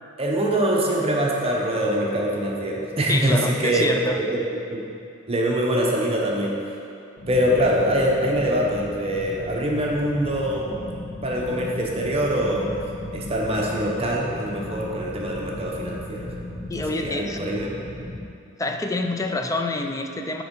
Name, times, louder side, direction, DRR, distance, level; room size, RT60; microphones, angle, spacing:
voice 1, 0.2-3.9 4.2-4.4 4.7-4.8 5.3-6.6 7.3-10.8 11.2-12.8 13.1-16.3 16.8-17.7, equal, 30° right, -2 dB, 0.8 m, -24 dB
voice 2, 3.1-4.2 16.7-17.4 18.6-20.4, left 2 dB, 15° left, 4 dB, 0.4 m, -27 dB
sound 1, 7.2-18.2, left 1 dB, 80° left, 1.8 m, -36 dB
6.6 x 4.4 x 5.3 m, 2.6 s
head